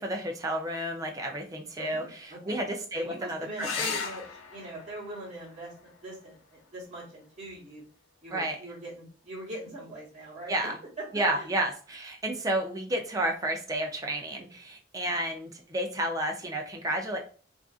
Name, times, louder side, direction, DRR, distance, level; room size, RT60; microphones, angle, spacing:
voice 1, 0.0-3.7 8.3-8.6 10.5-10.8 11.1-17.2, right 1 dB, 20° right, 2 dB, 0.4 m, -31 dB
voice 2, 1.8-2.6 2.9-7.8 8.2-10.7 11.3-11.5 15.1-15.2, right 1 dB, 40° right, -9 dB, 1.0 m, -42 dB
sound 1, 3.6-8.6 10.5-11.1 14.6-14.7 15.0-15.1, left 5 dB, 85° left, 0.4 m, -40 dB
2.5 x 2.4 x 2.4 m, 0.40 s
head